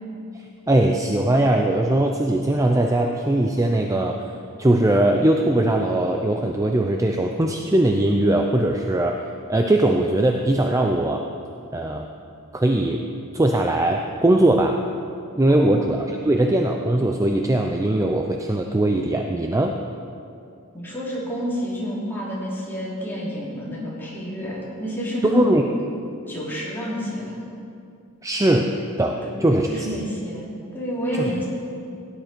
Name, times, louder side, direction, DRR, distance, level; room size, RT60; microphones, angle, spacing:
voice 1, 0.7-4.2 4.6-9.2 9.5-11.2 11.7-12.1 12.5-13.0 13.3-14.8 15.3-19.7 25.2-25.6 28.2-28.7 29.0-29.9 31.2-31.3, right 1 dB, 15° right, 3 dB, 0.5 m, -20 dB
voice 2, 15.6-16.1 16.3-16.4 20.7-25.5 26.3-27.4 29.2-30.5 30.7-31.5, equal, 10° left, -7 dB, 3.5 m, -29 dB
17.0 x 10.5 x 4.5 m, 2.5 s
head